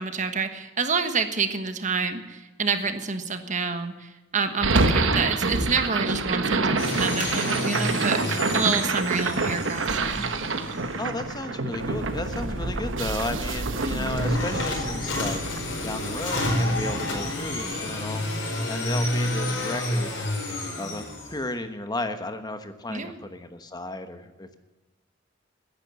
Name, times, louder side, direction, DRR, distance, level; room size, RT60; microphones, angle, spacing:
voice 1, 0.0-10.3 13.8-14.1 22.9-23.2, right 5 dB, 40° right, 8 dB, 1.3 m, -28 dB
sound 1, 3.8-3.9 5.3-6.5 6.9-7.8 8.0-8.1 8.4-9.6 11.0-11.8, equal, 20° right, 3.0 m, -38 dB
sound 2, 4.6-16.8, right 3 dB, 85° right, 1.3 m, -27 dB
sound 3, 6.8-11.3 14.1-21.4, left 1 dB, 75° left, 4.7 m, -29 dB
voice 2, 11.0-20.3 20.8-21.0 21.3-24.6, left 1 dB, 20° left, 8 dB, 1.1 m, -34 dB
16.0 x 10.5 x 6.9 m, 1.2 s
head